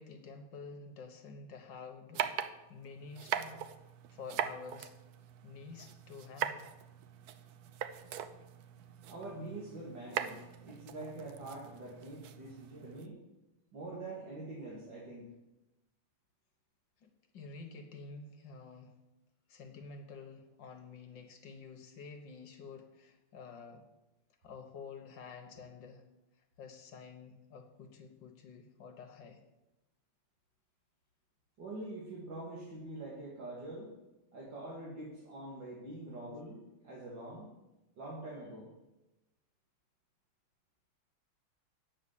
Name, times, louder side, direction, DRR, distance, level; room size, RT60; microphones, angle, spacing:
voice 1, 0.0-2.3 2.7-3.7 4.1-4.9 5.4-6.7 17.0-19.0 19.5-23.8 24.4-26.0 26.6-29.4, left 4 dB, 60° left, 5 dB, 1.7 m, -49 dB
sound 1, 2.1-13.1, right 9 dB, 80° right, 0.8 m, -41 dB
voice 2, 9.1-13.2 13.7-15.3 31.6-34.0 34.3-37.5 38.0-38.7, right 2 dB, 60° right, -5 dB, 2.7 m, -45 dB
9.0 x 6.6 x 8.6 m, 0.98 s
omnidirectional pair, 2.4 m